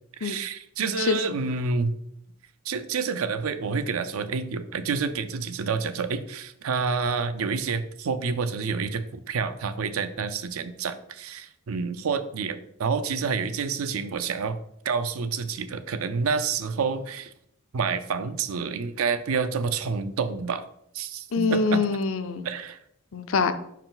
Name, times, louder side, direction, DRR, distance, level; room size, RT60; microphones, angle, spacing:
voice 1, 0.2-2.0 2.7-14.6 14.8-17.3 17.7-20.6 20.9-21.9 22.4-22.8, right 5 dB, 75° right, 11 dB, 0.5 m, -28 dB
voice 2, 21.3-22.5 23.1-23.5, left 4 dB, 65° left, 10 dB, 0.5 m, -24 dB
5.3 x 4.6 x 3.8 m, 0.74 s
head